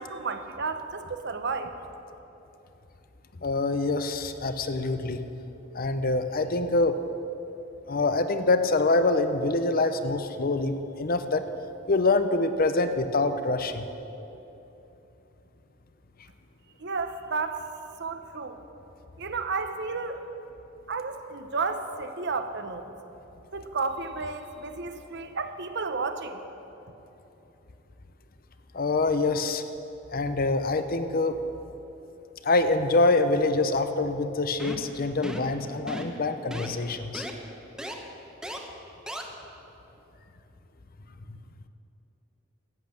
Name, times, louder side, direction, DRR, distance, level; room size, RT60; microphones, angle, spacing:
voice 1, 0.0-1.7 16.8-17.6 18.0-18.6 19.2-20.2 20.9-22.9 23.5-26.4, right 4 dB, 60° right, 8 dB, 1.0 m, -32 dB
voice 2, 3.4-5.2 5.7-7.0 7.9-11.5 11.9-13.9 28.7-29.6 30.1-31.4 32.4-37.2, left 3 dB, 45° left, 9 dB, 0.8 m, -25 dB
sound 1, 34.6-34.9 35.2-35.5 35.9-36.2 36.5-36.7 37.1-37.3 37.8-37.9 38.4-38.6 39.1-39.2, equal, 5° right, 1.1 m, -36 dB
13.5 x 8.4 x 8.8 m, 3.0 s
head